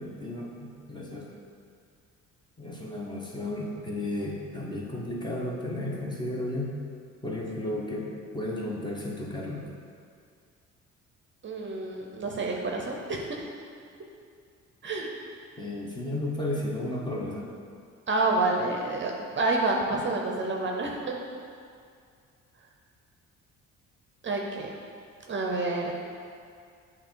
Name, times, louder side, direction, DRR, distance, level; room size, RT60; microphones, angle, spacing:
voice 1, 0.0-1.4 2.6-6.8 7.2-9.7 15.6-17.5, left 1 dB, 15° left, -4 dB, 1.0 m, -33 dB
voice 2, 11.4-13.4 14.8-15.1 18.1-21.2 24.2-24.8 25.3-25.9, right 2 dB, 40° right, 0 dB, 0.7 m, -28 dB
8.1 x 2.8 x 4.5 m, 2.3 s
cardioid pair, 100°, 30 cm